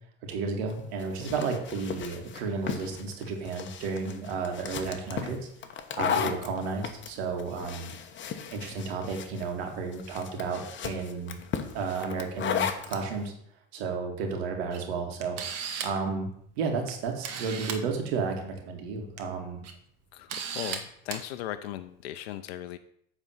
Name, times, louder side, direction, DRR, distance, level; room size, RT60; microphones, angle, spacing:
voice 1, 0.3-5.5 6.0-7.9 8.5-11.4 11.7-13.3 13.7-16.3 16.6-19.6, right 4 dB, 80° right, 3 dB, 2.2 m, -32 dB
sound 1, 0.7-13.0, left 7 dB, 40° left, 1.1 m, -35 dB
Camera, 14.7-14.8 15.2-16.0 16.9-17.0 17.2-17.8 19.0-19.2 19.6-19.7 20.3-20.8 21.1-21.2, right 7 dB, 50° right, 1.5 m, -35 dB
voice 2, 20.5-22.8, left 13 dB, 90° left, 10 dB, 0.6 m, -37 dB
9.0 x 4.1 x 7.2 m, 0.70 s
supercardioid pair, 95°, 31 cm